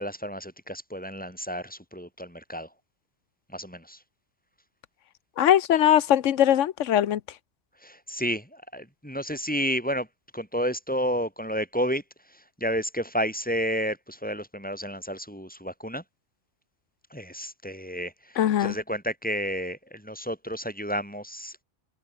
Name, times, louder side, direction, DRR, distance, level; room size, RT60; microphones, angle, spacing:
voice 1, 0.0-2.7 3.5-4.0 7.8-10.1 10.3-12.0 12.3-16.0 17.1-21.6, equal, 5° left, 6.7 m, -31 dB
voice 2, 5.4-7.2 18.4-18.7, left 11 dB, 90° left, 1.1 m, -21 dB
omnidirectional pair, 1.2 m